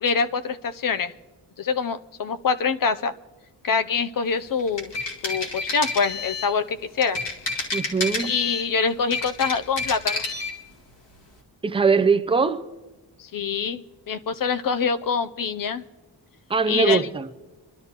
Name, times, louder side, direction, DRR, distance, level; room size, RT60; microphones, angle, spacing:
voice 1, 0.0-1.1 1.6-3.1 3.6-4.9 5.2-7.2 8.2-10.2 13.2-15.8 16.7-17.1, left 5 dB, 50° left, 0.6 m, -25 dB
sound 1, 4.6-6.6 7.0-8.7 9.0-10.6, left 3 dB, 75° left, 2.2 m, -29 dB
voice 2, 7.7-8.3 11.6-12.6 16.5-17.3, right 5 dB, 15° right, 0.4 m, -21 dB
25.0 x 12.0 x 2.9 m
wide cardioid pair, 165°, 42 cm